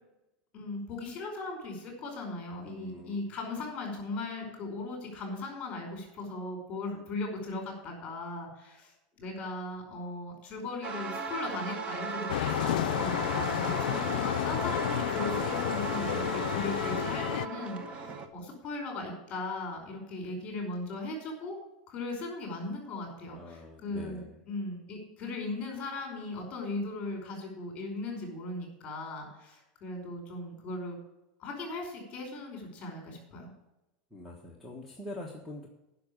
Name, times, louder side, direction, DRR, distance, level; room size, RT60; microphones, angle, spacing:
voice 1, 0.5-21.5 21.9-31.0 31.4-33.5, left 2 dB, 25° left, 2 dB, 5.0 m, -38 dB
voice 2, 2.6-3.2 14.0-14.4 23.3-24.4 34.1-35.7, left 1 dB, ahead, -1 dB, 1.4 m, -44 dB
sound 1, 10.8-18.3, right 4 dB, 25° right, 1.0 m, -36 dB
sound 2, 12.3-17.5, left 14 dB, 80° left, 0.4 m, -31 dB
10.5 x 6.2 x 8.6 m, 0.92 s
supercardioid pair, 145°, 4 cm